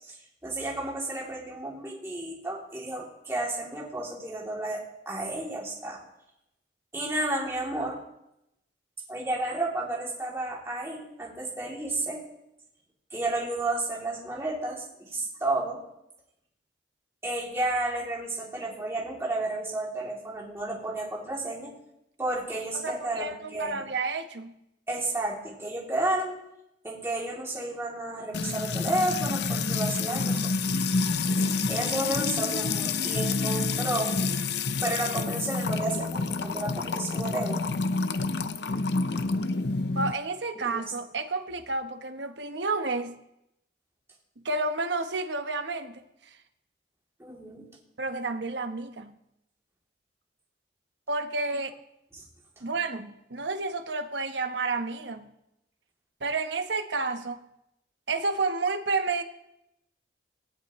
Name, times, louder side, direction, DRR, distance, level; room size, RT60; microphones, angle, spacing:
voice 1, 0.4-6.0 6.9-8.0 9.1-12.2 13.1-15.8 17.2-21.7 22.2-23.8 24.9-26.3 26.8-30.5 31.7-34.1 34.8-37.6 40.5-40.8 47.2-47.7 52.1-52.2, right 2 dB, 15° right, -4 dB, 2.9 m, -32 dB
voice 2, 22.7-24.5 39.9-43.2 44.4-46.4 48.0-49.2 51.1-51.8 52.6-55.3 56.2-57.4 58.1-59.2, right 3 dB, 75° right, 7 dB, 1.1 m, -30 dB
Music / Water tap faucet / Trickle dribble, 28.3-40.1, left 4 dB, 65° left, 0.6 m, -28 dB
17.5 x 17.0 x 3.1 m, 0.85 s
head